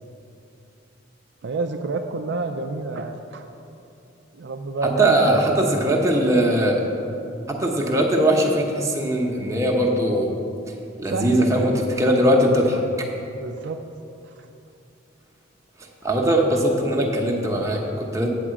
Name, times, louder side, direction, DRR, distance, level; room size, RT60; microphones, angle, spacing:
voice 1, 1.4-3.5 4.3-5.7 11.1-11.5 13.3-13.8 14.3-14.4, right 3 dB, 60° right, 5 dB, 0.4 m, -28 dB
voice 2, 4.8-6.8 7.5-10.3 11.0-12.8 16.0-18.3, right 1 dB, 15° right, 0 dB, 0.9 m, -20 dB
8.0 x 4.9 x 7.5 m, 2.7 s
head